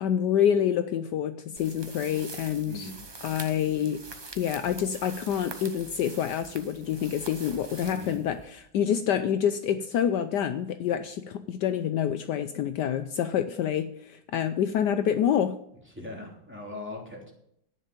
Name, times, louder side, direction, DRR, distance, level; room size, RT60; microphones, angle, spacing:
voice 1, 0.0-2.9 3.2-4.0 4.4-15.6, left 9 dB, 75° left, 10 dB, 1.2 m, -27 dB
sound 1, 1.6-8.7, right 3 dB, 25° right, 0.5 m, -44 dB
voice 2, 2.6-3.0 7.9-8.2 15.9-17.3, left 2 dB, 5° right, -1 dB, 3.0 m, -40 dB
11.0 x 9.9 x 5.2 m, 0.73 s
omnidirectional pair, 2.0 m